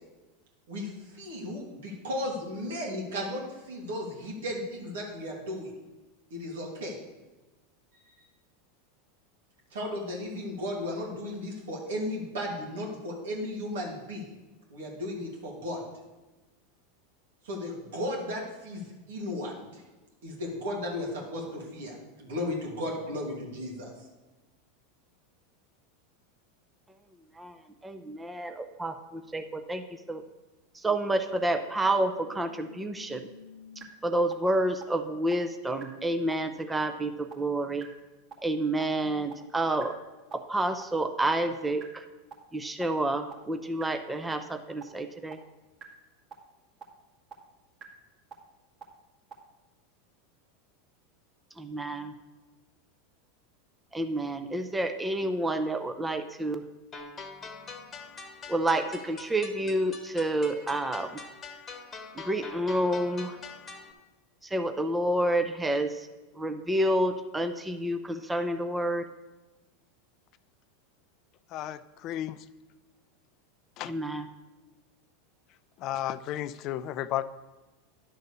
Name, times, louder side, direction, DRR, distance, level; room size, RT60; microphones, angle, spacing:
voice 1, 1.1-3.4 3.7-5.7 6.3-7.0 9.7-14.3 14.7-15.8 17.4-19.8 20.2-23.9, left 1 dB, 80° right, -1 dB, 2.6 m, -35 dB
voice 2, 27.8-30.2 30.7-33.3 34.0-37.9 38.4-40.0 40.3-42.0 42.5-45.4 51.6-52.1 53.9-56.6 58.5-61.2 62.1-63.4 64.4-66.1 66.3-69.0 73.9-74.2, right 1 dB, 10° right, 7 dB, 0.6 m, -29 dB
sound 1, 31.4-33.8 34.3-34.4 34.8-34.9 35.3-35.4 35.8-35.9 36.3-36.4 36.8-36.9 37.3-37.4 37.8-37.9 38.3-38.4 38.8-38.9 39.3-39.4 39.8-39.9 40.3-40.4 40.8-40.9 41.3-41.4 41.8-41.9 42.3-42.4 42.8-42.9 43.3-43.4 43.8-43.9 44.3-44.4 44.8-44.9 45.3-45.4 45.8-45.9 46.3-46.4 46.8-46.9 47.3-47.4 47.8-47.9 48.3-48.4 48.8-48.9 49.3-49.4, right 4 dB, 35° right, 2.0 m, -46 dB
sound 2, 56.9-63.9, left 4 dB, 20° left, 1.2 m, -44 dB
voice 3, 71.5-72.5 73.8-73.9 75.8-77.2, left 12 dB, 50° left, 13 dB, 0.4 m, -33 dB
11.0 x 4.0 x 6.8 m, 1.1 s
hypercardioid pair, 110°, 0 cm